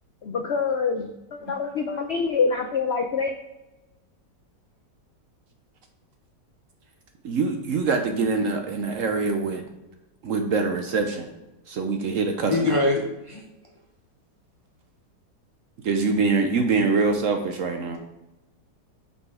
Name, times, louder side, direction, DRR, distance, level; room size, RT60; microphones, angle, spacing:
voice 1, 0.2-3.4, left 5 dB, 85° left, 5 dB, 0.5 m, -26 dB
voice 2, 7.2-9.6 10.2-11.3 11.7-12.8 15.8-18.0, right 4 dB, 60° right, 5 dB, 0.9 m, -24 dB
voice 3, 12.5-13.4, left 2 dB, 35° left, -1 dB, 0.5 m, -23 dB
5.6 x 5.3 x 4.8 m, 0.99 s
omnidirectional pair, 1.9 m